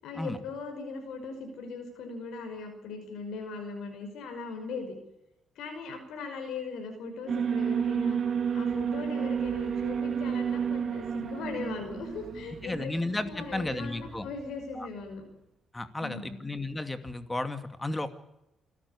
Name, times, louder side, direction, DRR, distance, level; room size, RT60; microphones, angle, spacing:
voice 1, 0.0-5.0 5.6-8.2 8.5-12.9 13.2-15.2 16.0-16.4, left 4 dB, 80° left, 4 dB, 5.6 m, -39 dB
Alarm, 7.3-14.4, right 7 dB, 50° right, 2.8 m, -31 dB
voice 2, 12.6-14.3 14.8-14.9 15.7-18.2, left 2 dB, 15° left, 10 dB, 2.4 m, -33 dB
27.5 x 12.5 x 9.9 m, 0.88 s
cardioid pair, 90°, 0 cm